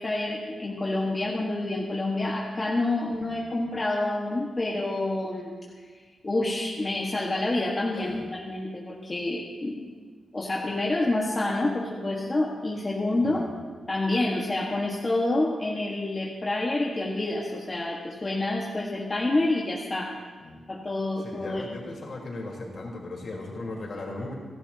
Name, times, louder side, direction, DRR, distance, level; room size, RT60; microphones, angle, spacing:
voice 1, 0.0-5.5 6.2-9.9 10.3-13.4 13.9-20.1 20.7-21.6, left 2 dB, 25° left, -3 dB, 1.5 m, -28 dB
voice 2, 13.2-13.5 20.4-20.6 21.2-24.3, left 2 dB, 55° left, -2 dB, 3.8 m, -37 dB
30.0 x 12.0 x 2.9 m, 1.5 s
wide cardioid pair, 130°, 0 cm